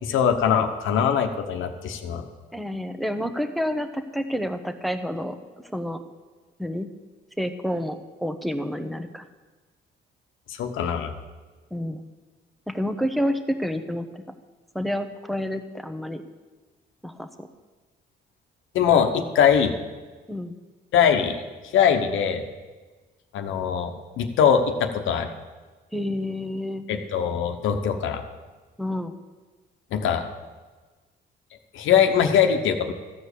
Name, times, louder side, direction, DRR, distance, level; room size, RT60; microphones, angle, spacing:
voice 1, 0.0-2.3 10.5-11.1 18.7-19.7 20.9-21.4 21.7-22.4 23.3-25.3 26.9-28.2 29.9-30.3 31.7-32.9, left 8 dB, 85° left, 5 dB, 1.1 m, -22 dB
voice 2, 2.5-5.4 5.7-6.0 6.6-6.9 7.4-9.2 11.7-12.0 12.7-14.2 14.7-16.2 17.0-17.5 20.3-20.5 25.9-26.9 28.8-29.2, equal, ahead, 8 dB, 0.9 m, -29 dB
14.0 x 5.1 x 8.3 m, 1.3 s
cardioid pair, 90°, 20 cm